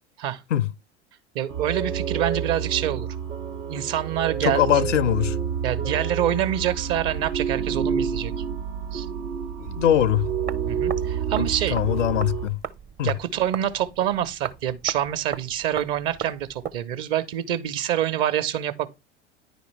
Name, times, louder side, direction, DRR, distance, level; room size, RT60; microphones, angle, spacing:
voice 1, 1.3-3.1 3.7-4.9 5.6-8.4 8.9-9.1 10.7-11.8 13.0-18.9, right 11 dB, 55° right, 1.2 m, -26 dB
sound 1, 1.5-12.5, right 7 dB, 85° right, 1.3 m, -29 dB
voice 2, 4.4-5.3 9.6-10.3 11.4-11.5 11.7-12.6 13.0-13.1, left 11 dB, 85° left, 0.6 m, -22 dB
sound 2, 10.2-16.8, right 8 dB, 25° right, 0.7 m, -38 dB
10.0 x 5.0 x 3.3 m
hypercardioid pair, 85°, 36 cm